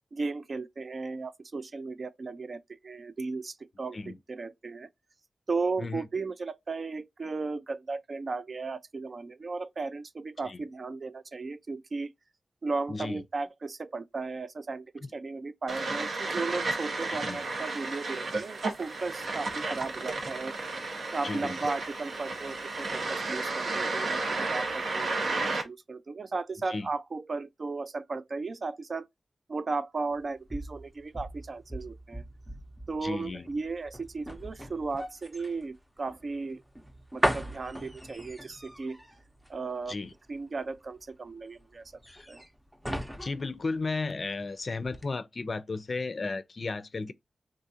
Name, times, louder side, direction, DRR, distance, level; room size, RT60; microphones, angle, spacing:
voice 1, 0.1-4.9 5.5-12.1 12.6-20.6 21.1-24.2 24.5-29.1 29.5-32.2 32.9-36.6 37.1-39.0 39.5-39.9 40.3-41.9 42.3-42.4, right 3 dB, 50° right, 0.3 m, -35 dB
voice 2, 12.9-13.2 17.1-17.4 21.2-21.6 26.7-26.9 33.0-33.5 39.9-40.1 42.1-42.3 43.2-47.1, left 3 dB, 50° left, 0.4 m, -34 dB
sound 1, 15.7-25.6, right 3 dB, 75° right, 0.9 m, -32 dB
sound 2, 30.1-44.5 44.8-45.1, equal, 10° right, 0.6 m, -38 dB
3.8 x 2.4 x 2.7 m
wide cardioid pair, 95°, 0 cm